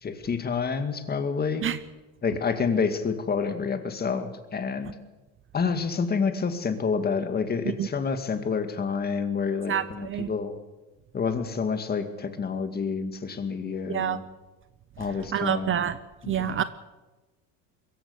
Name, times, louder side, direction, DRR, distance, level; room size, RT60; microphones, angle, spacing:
voice 1, 0.0-1.6 2.2-4.9 5.5-10.5 11.1-14.2 15.0-15.7 16.2-16.6, left 5 dB, 25° left, 8 dB, 2.1 m, -28 dB
voice 2, 9.7-10.3 13.9-14.2 15.3-16.0 16.3-16.6, right 9 dB, 35° right, 14 dB, 0.7 m, -27 dB
22.5 x 15.0 x 8.2 m, 1.1 s
cardioid pair, 135°, 37 cm